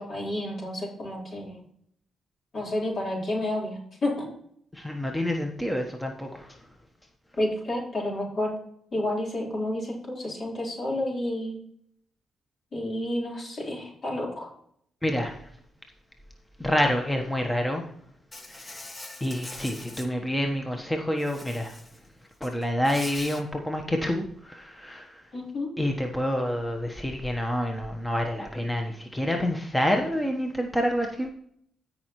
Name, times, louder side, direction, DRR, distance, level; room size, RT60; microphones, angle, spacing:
voice 1, 0.0-1.6 2.5-4.3 7.4-8.5 8.9-11.6 12.7-14.5 25.3-25.7, left 1 dB, 55° left, -3 dB, 4.3 m, -30 dB
voice 2, 4.7-6.7 15.0-15.5 16.6-17.9 18.4-18.9 19.2-21.8 22.4-25.3 25.8-31.3, equal, 10° left, 3 dB, 1.3 m, -28 dB
Insect, 18.3-20.1 21.2-22.0 22.3-23.4, left 2 dB, 30° left, 1.4 m, -42 dB
16.0 x 5.6 x 3.2 m, 0.69 s
hypercardioid pair, 45°, 0 cm